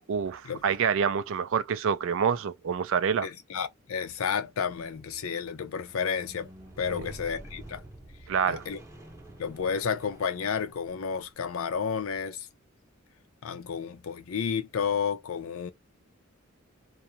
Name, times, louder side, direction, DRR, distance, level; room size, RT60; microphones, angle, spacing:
voice 1, 0.1-3.3 6.9-7.1 8.3-8.6, right 7 dB, 65° right, 0.4 m, -27 dB
voice 2, 3.2-6.5 6.8-7.8 8.5-8.8 9.4-12.4 13.4-15.7, left 6 dB, 70° left, 0.5 m, -31 dB
Squeak, 4.7-11.0 11.8-11.9, right 1 dB, 15° right, 0.8 m, -48 dB
2.3 x 2.0 x 2.7 m
head